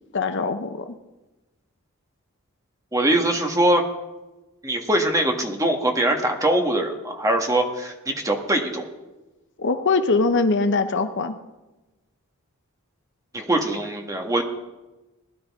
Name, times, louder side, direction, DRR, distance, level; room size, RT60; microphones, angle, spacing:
voice 1, 0.1-1.0 9.6-11.3, left 3 dB, 55° left, 9 dB, 0.8 m, -22 dB
voice 2, 2.9-3.8 4.6-8.9 13.3-14.4, right 1 dB, 15° right, 3 dB, 1.5 m, -22 dB
20.5 x 11.5 x 3.7 m, 1.1 s
head